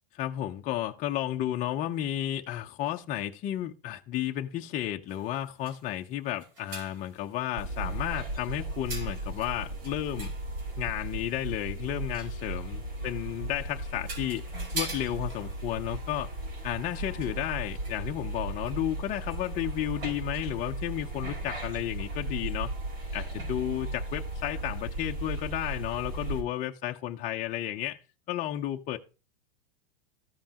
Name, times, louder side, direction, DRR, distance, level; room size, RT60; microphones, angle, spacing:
voice 1, 0.1-10.3 10.8-14.4 14.7-16.3 16.6-22.7 23.1-28.0 28.3-29.0, left 12 dB, 25° left, 0.6 m, -33 dB
sound 1, 5.1-8.0 8.8-11.2 12.1-12.5 13.5-13.6 14.0-18.3 18.6-18.9 19.3-19.6 20.3-20.4, right 3 dB, 70° right, 4.4 m, -44 dB
sound 2, 7.6-26.4, right 1 dB, 90° right, 5.3 m, -36 dB
14.0 x 5.2 x 2.9 m
supercardioid pair, 140°, 30 cm